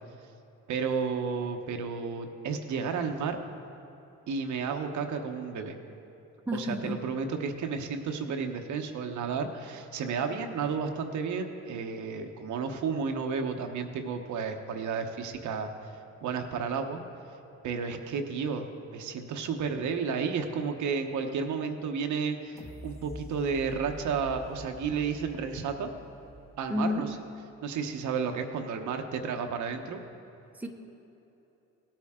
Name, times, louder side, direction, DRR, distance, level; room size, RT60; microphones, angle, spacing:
voice 1, 0.7-3.4 4.3-5.8 6.5-15.7 16.2-17.0 17.6-25.9 26.6-27.1 27.6-30.0, right 5 dB, 75° right, 5 dB, 1.0 m, -32 dB
voice 2, 6.5-7.0 8.2-8.3 26.7-27.1 30.6-30.7, left 1 dB, 5° right, 3 dB, 0.9 m, -31 dB
sound 1, 22.6-27.5 27.9-28.0, left 1 dB, 20° left, 1.2 m, -47 dB
17.5 x 8.9 x 3.7 m, 3.0 s
cardioid pair, 90°, 30 cm